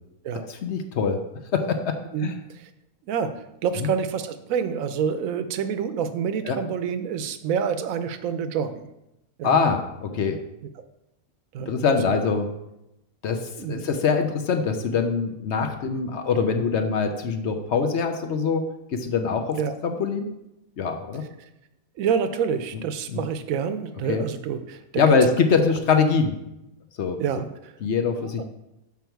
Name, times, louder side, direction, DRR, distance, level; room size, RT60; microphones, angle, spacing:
voice 1, 0.3-1.2 1.5-2.4 3.8-3.9 6.5-6.6 9.4-10.4 11.7-12.5 13.2-13.4 13.7-20.3 20.8-21.2 23.1-23.2 24.1-24.2 25.0-26.3 27.0-27.2 27.8-28.4, left 5 dB, 60° left, 6 dB, 0.9 m, -23 dB
voice 2, 3.1-8.8 9.4-9.6 11.5-12.2 13.6-13.8 19.5-19.7 21.4-21.5 22.0-25.3 27.2-27.7 28.4-28.5, right 7 dB, 70° right, 10 dB, 1.1 m, -27 dB
7.2 x 5.3 x 4.6 m, 0.88 s
omnidirectional pair, 1.5 m